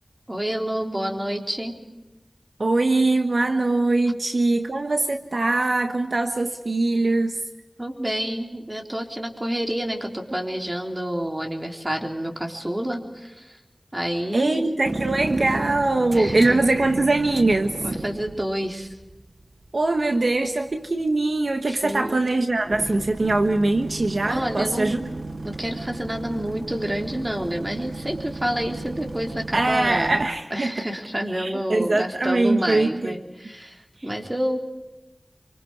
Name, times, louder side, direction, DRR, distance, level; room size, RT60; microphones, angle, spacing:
voice 1, 0.3-1.8 7.8-13.6 13.9-14.6 16.1-16.6 17.8-18.9 21.7-22.2 24.2-30.2 30.5-34.6, equal, 25° right, 1 dB, 3.7 m, -29 dB
voice 2, 2.6-7.4 14.3-17.7 19.7-25.0 29.5-30.7 31.3-33.1, right 2 dB, 80° right, 5 dB, 1.3 m, -22 dB
sound 1, 14.8-30.3, right 2 dB, 65° right, 1.2 m, -34 dB
27.5 x 25.0 x 4.8 m, 1.1 s
wide cardioid pair, 45°, 0 cm